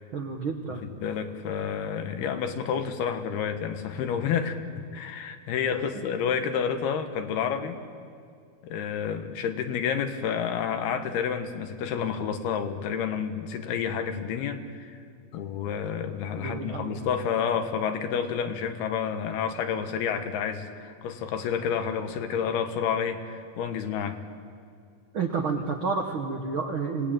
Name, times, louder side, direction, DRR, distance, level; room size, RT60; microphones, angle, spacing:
voice 1, 0.1-0.8 5.7-6.0 16.4-16.9 25.1-27.1, right 4 dB, 70° right, 3 dB, 1.2 m, -30 dB
voice 2, 0.7-4.7 4.9-7.8 8.6-15.0 15.3-24.2, left 7 dB, 90° left, 7 dB, 3.3 m, -29 dB
26.5 x 18.0 x 8.9 m, 2.3 s
omnidirectional pair, 4.4 m